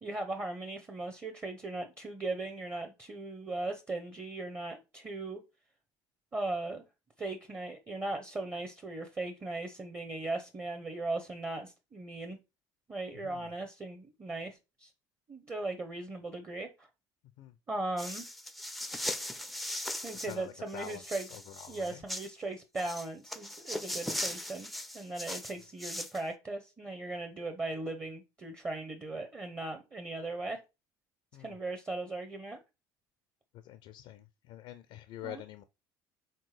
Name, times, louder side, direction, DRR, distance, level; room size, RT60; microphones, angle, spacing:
voice 1, 0.0-5.4 6.3-6.8 7.2-12.4 12.9-14.9 15.3-16.9 17.7-18.3 20.0-21.3 21.7-24.7 24.9-30.6 31.4-32.6 35.2-35.4, right 2 dB, 25° right, 0.8 m, -38 dB
sound 1, 18.0-20.4 20.7-22.3 22.8-26.2, left 1 dB, ahead, 0.4 m, -39 dB
voice 2, 20.3-22.0 31.3-31.6 33.6-35.6, left 12 dB, 65° left, 0.4 m, -47 dB
4.4 x 3.6 x 3.2 m
supercardioid pair, 85°, 10 cm